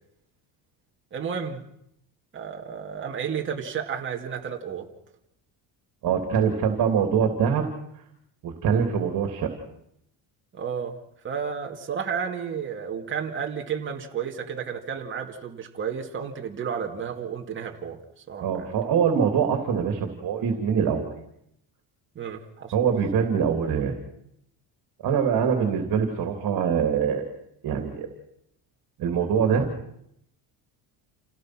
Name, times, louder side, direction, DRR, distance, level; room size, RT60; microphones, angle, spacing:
voice 1, 1.1-1.6 2.3-4.9 10.5-11.0 11.2-18.0 18.3-18.7 22.2-22.7, right 7 dB, 25° right, 1 dB, 2.2 m, -32 dB
voice 2, 6.0-7.6 8.4-9.5 18.4-21.1 22.7-23.9 25.0-27.3 27.6-28.1 29.0-29.7, right 7 dB, 50° right, 4 dB, 3.0 m, -24 dB
28.5 x 17.5 x 6.1 m, 0.76 s
cardioid pair, 150°, 44 cm